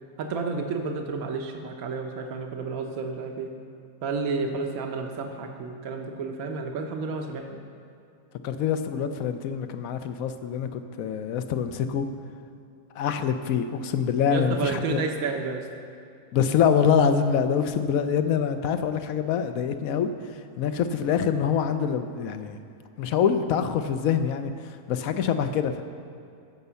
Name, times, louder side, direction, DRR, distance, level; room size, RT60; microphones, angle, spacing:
voice 1, 0.2-3.6 4.0-7.6 14.3-15.7, right 4 dB, 75° right, 3 dB, 1.3 m, -31 dB
voice 2, 8.4-12.1 13.0-15.0 16.3-20.1 20.6-22.6 23.0-25.8, left 7 dB, 70° left, 9 dB, 1.1 m, -25 dB
16.0 x 5.4 x 6.9 m, 2.5 s
omnidirectional pair, 1.6 m